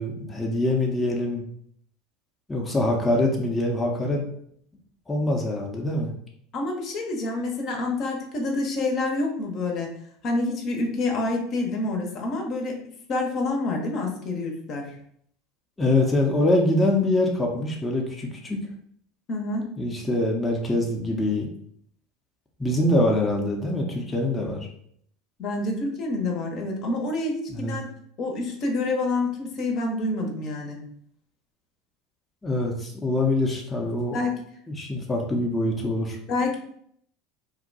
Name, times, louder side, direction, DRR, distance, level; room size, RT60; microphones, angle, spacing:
voice 1, 0.0-1.5 2.5-4.2 5.1-6.1 15.8-18.6 19.8-21.5 22.6-24.7 27.5-27.8 32.4-34.2 34.7-36.2, left 1 dB, 15° left, -1 dB, 0.6 m, -24 dB
voice 2, 6.5-9.9 10.2-12.8 13.1-14.9 19.3-19.7 25.4-27.9 28.2-30.8 34.1-34.3 36.3-36.6, left 2 dB, 50° left, 1 dB, 0.7 m, -27 dB
2.6 x 2.2 x 3.9 m, 0.67 s
hypercardioid pair, 85°, 0 cm